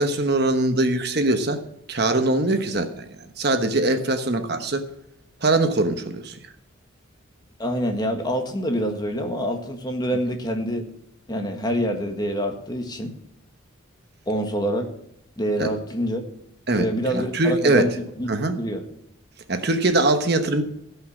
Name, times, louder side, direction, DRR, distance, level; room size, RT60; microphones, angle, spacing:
voice 1, 0.0-1.6 1.9-3.0 3.4-4.8 5.4-6.4 15.6-15.7 16.7-17.9 18.3-18.6 19.5-20.6, right 2 dB, 50° right, 7 dB, 1.1 m, -22 dB
voice 2, 7.6-10.8 11.3-13.1 14.3-14.9 15.4-16.2 16.7-18.3 18.6-18.8, equal, 20° left, 4 dB, 1.5 m, -26 dB
15.5 x 5.8 x 7.2 m, 0.75 s
head